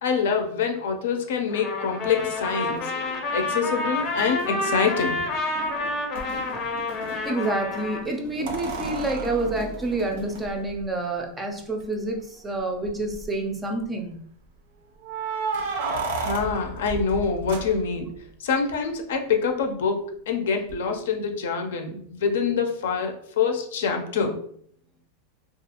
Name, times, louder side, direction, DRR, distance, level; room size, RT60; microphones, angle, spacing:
voice 1, 0.0-5.2 16.2-18.1 18.4-24.4, left 5 dB, 80° left, 5 dB, 0.5 m, -26 dB
Trumpet, 1.5-8.0, left 2 dB, 30° left, 0.6 m, -29 dB
sound 1, 1.9-10.6, left 1 dB, 90° right, 1.0 m, -42 dB
sound 2, 6.2-6.3 8.5-10.8 11.8-11.9 12.2-12.3 12.8-13.3 15.0-18.2 20.7-20.8, right 3 dB, 70° right, 0.5 m, -32 dB
voice 2, 7.3-14.1, right 2 dB, 15° right, 2 dB, 0.4 m, -28 dB
2.4 x 2.3 x 2.8 m, 0.63 s
supercardioid pair, 150°, 0 cm